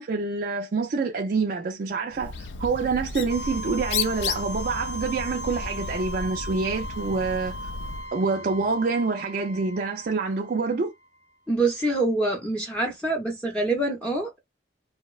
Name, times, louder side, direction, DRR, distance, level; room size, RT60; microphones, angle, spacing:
voice 1, 0.0-7.5 8.1-10.9, right 4 dB, 50° right, 0.4 m, -27 dB
Bird, 2.1-8.1, left 5 dB, 80° left, 0.4 m, -34 dB
sound 1, 3.3-11.1, equal, 60° left, 0.8 m, -38 dB
voice 2, 11.5-14.4, right 2 dB, 5° left, 0.5 m, -25 dB
2.8 x 2.1 x 2.3 m
head